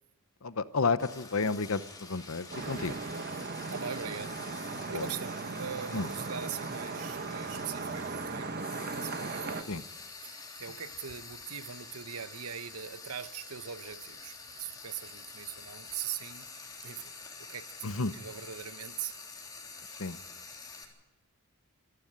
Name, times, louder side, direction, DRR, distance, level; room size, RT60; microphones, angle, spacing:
voice 1, 0.4-2.9 4.9-5.1 5.9-6.1 9.7-9.8 17.8-18.1 20.0-20.2, left 4 dB, 70° left, 0.9 m, -31 dB
Frying (food), 1.0-20.8, left 4 dB, 20° left, 3.3 m, -47 dB
Vehicle horn car horn honking / Traffic noise roadway noise, 2.5-9.6, right 3 dB, 45° right, 1.1 m, -38 dB
voice 2, 2.8-3.3 3.7-9.8 10.2-16.5 16.8-17.1 17.4-19.1, right 8 dB, 90° right, 1.0 m, -42 dB
26.0 x 11.5 x 8.9 m
head